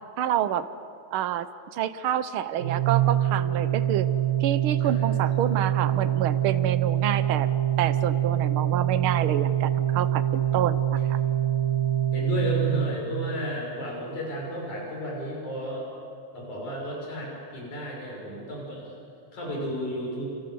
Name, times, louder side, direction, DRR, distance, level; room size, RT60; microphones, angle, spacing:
voice 1, 0.2-0.7 1.1-1.5 1.7-4.1 4.4-7.5 7.8-11.2, right 10 dB, 70° right, 13 dB, 1.3 m, -28 dB
Organ, 2.6-13.5, right 12 dB, 35° right, 1.8 m, -25 dB
voice 2, 12.1-15.9 16.3-19.0 19.3-20.3, equal, 85° left, -2 dB, 7.4 m, -33 dB
29.0 x 28.0 x 7.0 m, 2.5 s
omnidirectional pair, 3.3 m